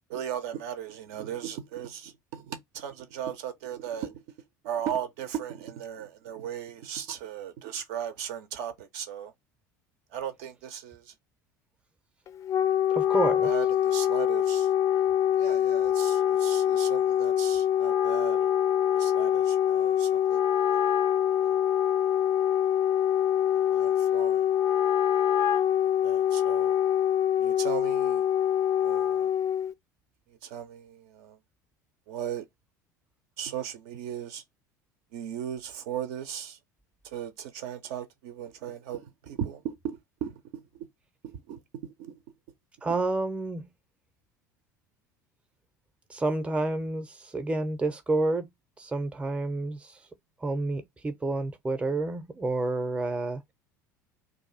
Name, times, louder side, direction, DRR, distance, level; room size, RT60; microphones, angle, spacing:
voice 1, 0.1-4.2 4.6-9.3 10.1-11.1 13.4-14.7 15.4-18.5 18.9-20.4 20.7-20.8 21.4-21.5 23.7-24.5 25.8-26.7 27.4-28.3 28.8-29.3 30.3-31.4 32.1-32.5 33.4-34.4 35.1-36.6 37.0-40.9 41.2-42.2 42.9-43.0, right 9 dB, 55° right, 0.5 m, -37 dB
Wind instrument woodwind instrument, 12.3-29.7, left 10 dB, 30° left, 0.4 m, -24 dB
voice 2, 12.9-13.5 42.8-43.6 46.1-48.5 48.8-49.8 50.4-53.4, right 2 dB, 10° right, 0.6 m, -29 dB
2.6 x 2.3 x 3.9 m
figure-of-eight pair, 70°, 10 cm